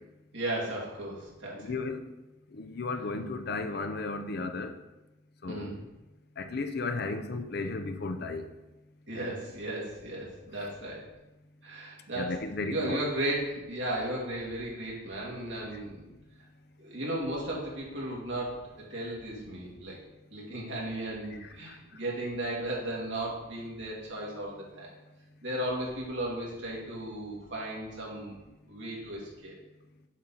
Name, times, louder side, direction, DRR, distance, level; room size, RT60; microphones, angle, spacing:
voice 1, 0.3-1.7 5.5-5.8 9.1-11.0 11.6-12.4 12.7-16.1 16.8-18.6 18.9-20.0 20.3-24.9 25.4-28.4 28.7-29.6, right 1 dB, 75° right, -4 dB, 2.3 m, -35 dB
voice 2, 1.5-2.0 2.6-4.7 5.4-5.7 6.4-8.5 9.2-9.3 12.1-13.0, left 3 dB, 55° left, 7 dB, 0.6 m, -34 dB
7.2 x 6.1 x 3.9 m, 1.0 s
head